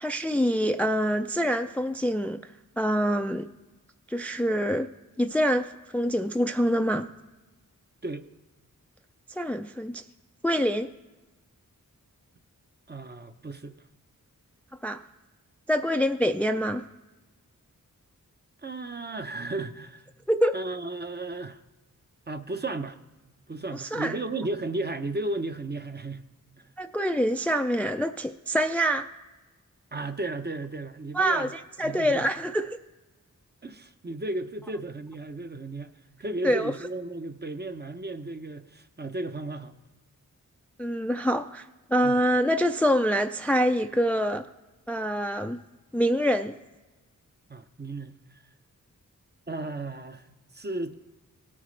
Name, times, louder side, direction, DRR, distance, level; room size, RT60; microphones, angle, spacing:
voice 1, 0.0-2.4 2.8-3.5 4.1-4.9 5.2-7.1 9.4-10.0 10.4-10.9 14.8-15.0 15.7-16.8 20.3-20.6 23.7-24.2 26.8-29.1 31.1-32.8 36.4-36.7 40.8-41.6 41.9-44.5 44.9-45.6 45.9-46.6, equal, 5° left, 7 dB, 0.4 m, -25 dB
voice 2, 12.9-13.8 18.6-20.1 20.5-21.6 22.3-23.0 23.5-26.3 29.9-31.5 31.8-32.3 33.6-35.9 36.2-39.7 42.0-42.2 47.5-48.2 49.5-50.3 50.5-50.9, right 2 dB, 30° right, 8 dB, 0.7 m, -34 dB
18.0 x 8.7 x 3.2 m, 1.1 s
wide cardioid pair, 55°, 34 cm